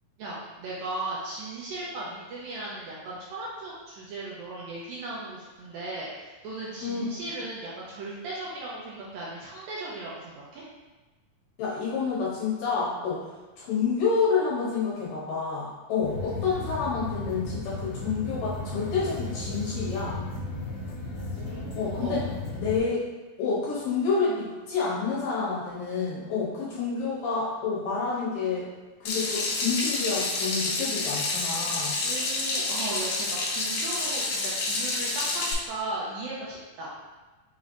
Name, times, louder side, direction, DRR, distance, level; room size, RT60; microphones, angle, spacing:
voice 1, 0.2-10.7 21.4-22.2 32.0-36.9, right 2 dB, 80° right, -6 dB, 2.2 m, -37 dB
voice 2, 11.6-13.2 13.6-20.2 21.7-22.3 22.5-23.0 23.4-28.7 29.0-32.0, left 5 dB, 70° left, -7 dB, 2.3 m, -28 dB
sound 1, 16.0-22.8, left 2 dB, 50° left, 2.3 m, -35 dB
Water tap faucet / Sink (filling or washing), 29.1-35.5, left 3 dB, 90° left, 1.8 m, -29 dB
6.0 x 3.2 x 2.5 m, 1.2 s
omnidirectional pair, 4.6 m